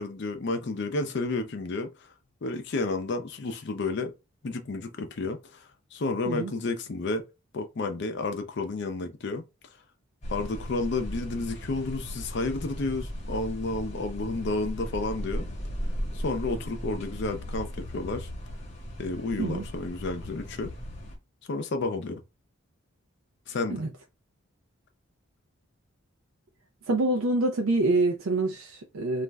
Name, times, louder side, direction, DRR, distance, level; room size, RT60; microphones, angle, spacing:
voice 1, 0.0-2.1 2.4-4.1 4.4-7.2 7.5-9.4 10.3-15.5 16.1-18.3 19.0-20.7 21.5-22.2 23.5-23.8, left 3 dB, 55° left, 0.5 m, -31 dB
sound 1, 10.2-21.2, equal, 35° left, 1.0 m, -37 dB
voice 2, 26.9-29.2, right 2 dB, 85° right, 0.4 m, -26 dB
2.4 x 2.1 x 3.4 m
head